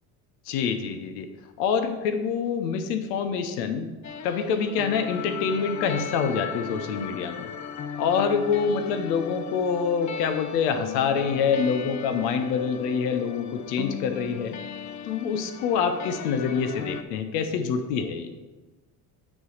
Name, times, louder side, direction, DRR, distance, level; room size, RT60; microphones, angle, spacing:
voice 1, 0.5-1.3 1.6-3.9 4.2-7.5 8.0-14.6 15.0-18.4, left 6 dB, 90° left, 8 dB, 0.7 m, -26 dB
sound 1, 4.0-17.0, left 7 dB, 40° left, 0.6 m, -36 dB
8.7 x 3.2 x 6.4 m, 1.2 s
supercardioid pair, 70°, 46 cm